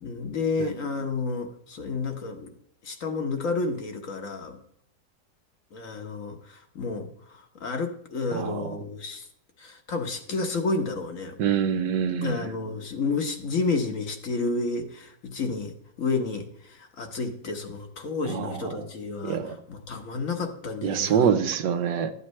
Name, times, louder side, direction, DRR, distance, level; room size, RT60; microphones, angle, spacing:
voice 1, 0.0-2.5 2.8-4.6 5.7-9.3 9.6-11.4 12.2-15.7 16.0-21.3, left 3 dB, 55° left, 5 dB, 1.3 m, -31 dB
voice 2, 8.3-8.7 11.4-12.5 18.3-18.9 19.2-19.6 20.8-22.1, right 8 dB, 85° right, 10 dB, 1.4 m, -25 dB
12.5 x 8.1 x 3.2 m, 0.69 s
omnidirectional pair, 1.8 m